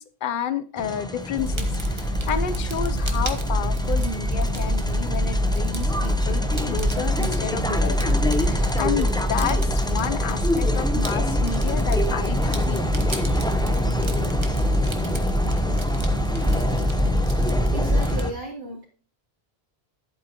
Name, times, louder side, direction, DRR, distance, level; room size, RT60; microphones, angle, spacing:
voice 1, 0.0-13.4, left 7 dB, 55° left, 13 dB, 0.9 m, -31 dB
sound 1, 0.8-18.3, left 1 dB, 5° left, 0.7 m, -28 dB
Fire, 1.4-18.2, equal, 25° right, 1.2 m, -24 dB
voice 2, 17.4-18.8, right 2 dB, 65° right, -7 dB, 3.3 m, -35 dB
11.0 x 8.3 x 2.9 m, 0.38 s
omnidirectional pair, 1.1 m